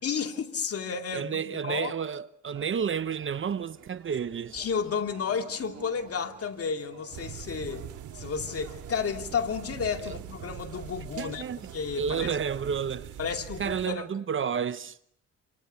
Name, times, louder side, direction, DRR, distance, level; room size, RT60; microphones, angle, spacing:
voice 1, 0.0-1.9 4.5-7.9 8.1-11.4 11.7-12.3 13.2-14.1, left 6 dB, 50° left, 2.8 m, -32 dB
voice 2, 1.1-4.6 10.0-10.2 11.2-11.7 12.0-13.2 13.6-15.0, right 7 dB, 40° right, 1.0 m, -31 dB
sound 1, 2.5-12.9, right 8 dB, 65° right, 3.8 m, -52 dB
sound 2, 7.1-13.9, right 10 dB, 85° right, 2.7 m, -43 dB
28.0 x 27.5 x 5.7 m
cardioid pair, 90°, 30 cm